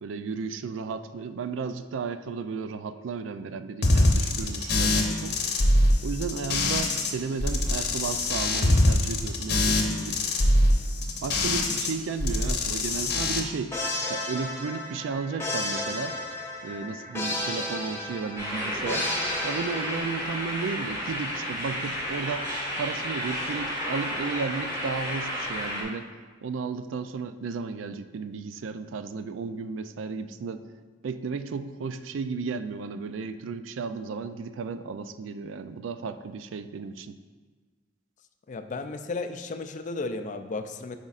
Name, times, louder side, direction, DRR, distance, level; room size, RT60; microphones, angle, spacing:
voice 1, 0.0-5.4 6.0-10.3 11.2-13.7 14.0-16.2 16.6-19.1 19.4-22.5 22.8-26.1 26.4-30.6 31.0-37.2, right 5 dB, 85° right, 11 dB, 0.3 m, -34 dB
sound 1, 3.8-7.1 7.4-11.9 12.2-13.4, left 1 dB, 60° left, 0.8 m, -23 dB
sound 2, 13.7-20.6, left 1 dB, 15° left, 1.0 m, -33 dB
sound 3, 18.4-25.8, equal, 20° right, 1.9 m, -32 dB
voice 2, 38.5-41.0, left 3 dB, 40° left, 8 dB, 0.4 m, -34 dB
9.4 x 5.0 x 2.4 m, 1.4 s
head